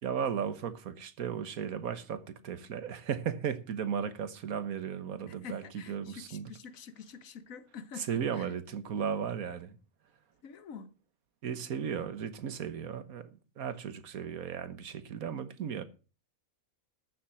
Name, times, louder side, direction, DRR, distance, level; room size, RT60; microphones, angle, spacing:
voice 1, 0.0-6.5 8.0-9.8 11.4-13.3 13.6-15.8, right 7 dB, 80° right, 1.6 m, -35 dB
voice 2, 5.3-8.5 10.4-10.9, left 6 dB, 70° left, 1.3 m, -47 dB
13.5 x 7.3 x 6.2 m
omnidirectional pair, 1.5 m